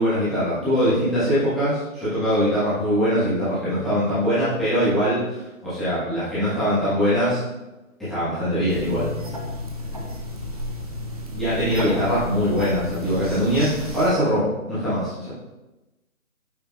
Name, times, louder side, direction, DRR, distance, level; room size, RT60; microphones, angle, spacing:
voice 1, 0.0-7.4 8.1-9.1 11.3-15.3, equal, ahead, -15 dB, 1.4 m, -22 dB
sound 1, 8.7-14.1, left 1 dB, 25° right, 0.7 m, -31 dB
9.0 x 5.3 x 2.4 m, 1.0 s
figure-of-eight pair, 160°, 42 cm